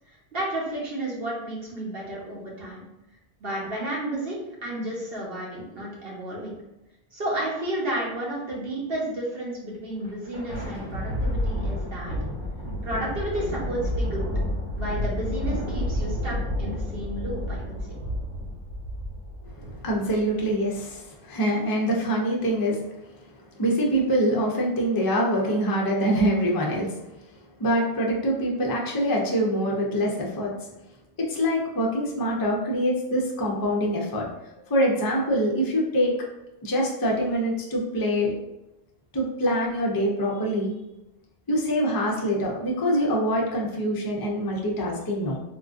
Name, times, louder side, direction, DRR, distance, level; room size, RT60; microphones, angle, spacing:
voice 1, 0.1-2.8 3.4-6.5 7.1-12.2 12.8-14.3 14.7-17.7, right 1 dB, 60° right, -4 dB, 1.2 m, -32 dB
Thunder, 9.9-20.7, left 1 dB, 25° right, 0.9 m, -30 dB
voice 2, 19.8-23.2 23.6-27.0 27.6-30.5 31.2-34.3 34.7-36.1 36.6-38.3 39.1-40.7 41.5-45.4, equal, 30° left, -2 dB, 0.4 m, -24 dB
3.6 x 2.4 x 2.4 m, 0.95 s
omnidirectional pair, 1.1 m